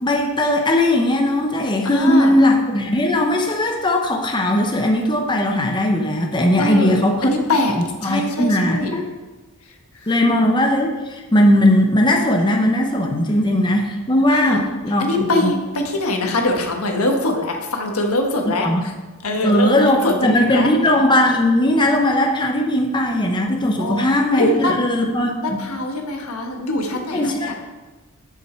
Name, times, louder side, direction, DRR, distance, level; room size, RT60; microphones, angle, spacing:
voice 1, 0.0-7.3 7.7-9.1 10.1-15.5 18.6-18.8 19.4-25.6 27.1-27.5, left 1 dB, 20° left, 1 dB, 0.8 m, -18 dB
voice 2, 1.8-2.3 6.6-6.9 7.2-7.7 8.0-8.9 10.0-10.2 14.3-14.6 15.0-18.9 19.2-20.7 23.8-24.7 25.4-27.5, left 1 dB, 85° left, 2 dB, 1.3 m, -23 dB
7.4 x 7.4 x 4.4 m, 1.2 s
head